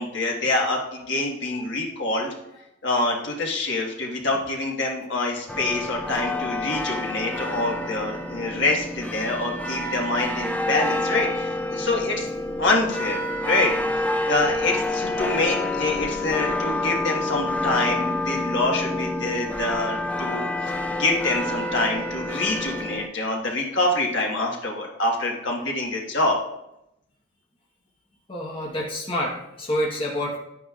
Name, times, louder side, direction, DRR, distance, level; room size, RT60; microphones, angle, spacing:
voice 1, 0.0-2.3 2.8-12.3 12.6-13.2 13.4-13.7 14.2-26.4, left 2 dB, 55° left, -1 dB, 1.5 m, -26 dB
sound 1, 5.5-23.1, left 1 dB, 5° left, 0.4 m, -28 dB
voice 2, 28.3-30.4, equal, 25° left, -3 dB, 1.1 m, -28 dB
10.5 x 9.2 x 2.4 m, 0.84 s
head